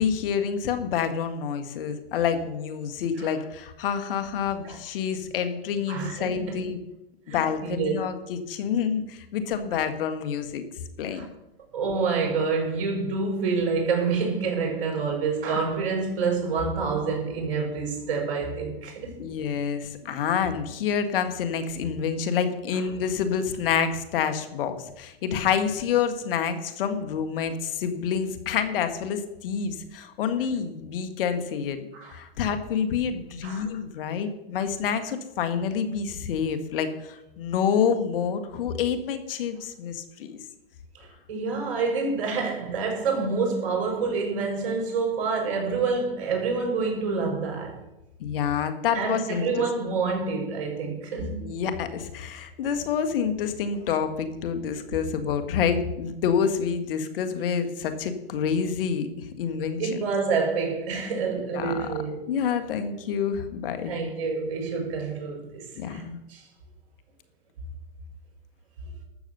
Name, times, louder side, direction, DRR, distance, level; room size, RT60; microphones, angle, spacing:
voice 1, 0.0-6.8 7.3-10.6 11.0-11.3 19.2-31.8 32.1-40.4 48.2-50.0 51.4-60.0 61.5-61.9 62.3-63.9 65.8-66.2, left 7 dB, 60° left, 1.8 m, -28 dB
voice 2, 5.9-6.6 7.3-7.9 11.1-11.3 11.7-19.2 31.9-32.2 33.4-33.7 40.9-47.8 48.9-51.4 59.8-62.3 63.9-66.0 66.3-66.4, right 4 dB, 60° right, 5.7 m, -27 dB
13.0 x 7.2 x 6.8 m
hypercardioid pair, 125°, 31 cm